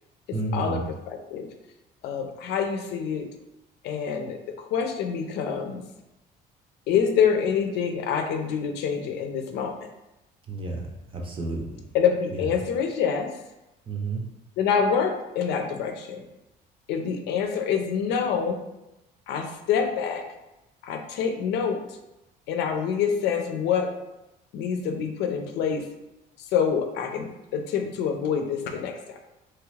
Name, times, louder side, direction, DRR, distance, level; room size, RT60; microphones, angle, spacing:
voice 1, 0.3-0.8 10.5-11.7 12.3-12.4 13.9-14.2, right 2 dB, 30° right, 0 dB, 0.7 m, -31 dB
voice 2, 1.1-1.5 2.0-3.3 3.8-5.8 6.9-9.9 11.9-13.3 14.6-16.2 16.9-18.6 19.3-20.2 20.8-21.8 22.5-23.9 24.5-25.8 26.4-28.9, left 7 dB, 85° left, 4 dB, 0.5 m, -26 dB
2.9 x 2.4 x 3.1 m, 0.92 s
cardioid pair, 110°, 17 cm